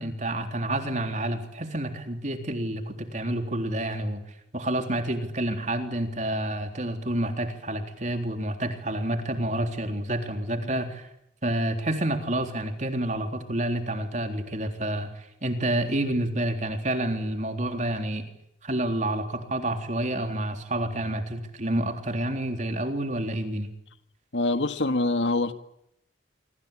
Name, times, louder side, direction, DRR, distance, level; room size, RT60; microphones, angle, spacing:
voice 1, 0.0-4.2 4.5-11.1 11.4-18.2 18.6-23.7, right 1 dB, 40° right, 6 dB, 3.7 m, -29 dB
voice 2, 24.3-25.5, left 2 dB, 70° left, 9 dB, 1.9 m, -24 dB
26.0 x 25.5 x 8.6 m, 0.76 s
head